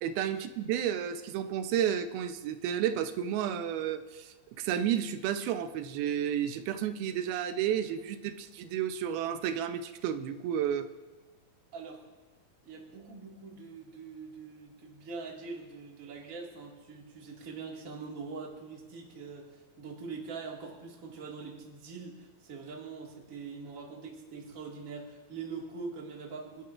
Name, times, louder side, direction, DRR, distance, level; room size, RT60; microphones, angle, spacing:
voice 1, 0.0-10.9, right 9 dB, 85° right, 9 dB, 2.6 m, -32 dB
voice 2, 11.7-12.0 12.6-26.7, right 4 dB, 30° right, -1 dB, 1.6 m, -43 dB
27.5 x 11.5 x 2.5 m, 1.2 s
omnidirectional pair, 4.3 m